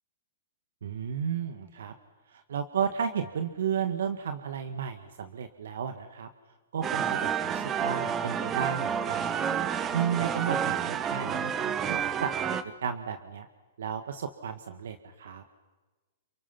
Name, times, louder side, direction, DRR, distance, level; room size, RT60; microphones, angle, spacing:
voice 1, 0.8-1.9 2.3-6.3 6.7-9.4 9.9-12.3 12.8-13.5 13.8-15.4, right 7 dB, 75° right, 8 dB, 1.8 m, -33 dB
sound 1, 6.8-12.6, right 8 dB, 20° right, 1.4 m, -29 dB
30.0 x 27.5 x 6.0 m, 1.2 s
hypercardioid pair, 140°, 0 cm